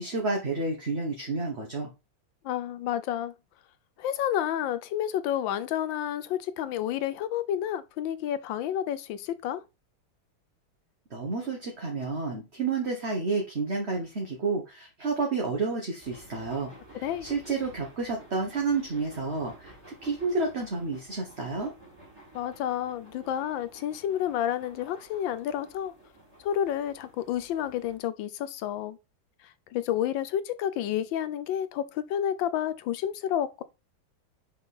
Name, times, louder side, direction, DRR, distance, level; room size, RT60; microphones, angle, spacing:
voice 1, 0.0-1.9 11.1-21.7, right 3 dB, 35° right, 1.4 m, -30 dB
voice 2, 2.4-3.3 4.0-9.6 17.0-17.3 22.3-25.9 26.4-29.0 29.7-33.6, left 10 dB, 75° left, 1.3 m, -30 dB
sound 1, 16.0-28.0, right 1 dB, 10° right, 2.5 m, -52 dB
5.5 x 5.4 x 4.2 m
omnidirectional pair, 2.2 m